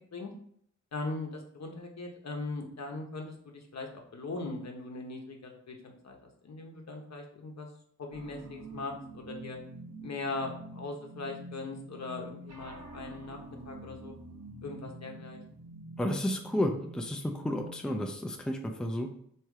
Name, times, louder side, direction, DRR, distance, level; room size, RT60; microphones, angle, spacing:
voice 1, 0.9-6.2 6.4-7.7 8.0-9.6 10.0-13.4 13.6-14.1 14.6-15.4, left 3 dB, 60° left, 2 dB, 1.0 m, -40 dB
sound 1, 8.1-18.1, right 2 dB, 55° right, 1.1 m, -47 dB
voice 2, 16.0-19.1, left 1 dB, 5° left, 3 dB, 0.5 m, -32 dB
3.5 x 3.0 x 4.8 m, 0.66 s
cardioid pair, 75°, 31 cm